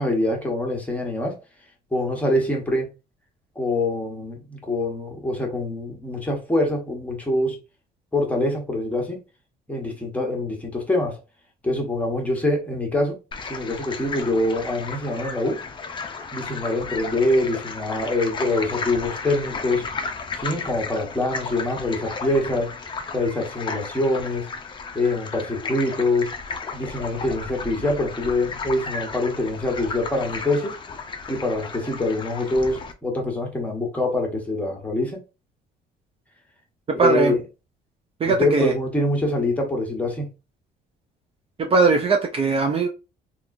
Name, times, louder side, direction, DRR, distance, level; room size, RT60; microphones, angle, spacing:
voice 1, 0.0-1.4 1.9-2.9 3.5-7.6 8.1-9.2 9.7-11.2 11.6-13.2 13.4-15.6 16.3-19.9 20.4-22.7 23.1-24.5 24.9-26.3 26.7-30.8 31.3-35.2 36.9-37.4 38.3-40.3, left 2 dB, 10° left, 1.1 m, -24 dB
sound 1, 13.3-32.9, left 4 dB, 30° left, 0.5 m, -34 dB
voice 2, 36.9-37.3 38.2-38.7 41.6-42.9, right 4 dB, 35° right, 0.5 m, -20 dB
3.4 x 2.4 x 2.6 m
cardioid pair, 110°, 17 cm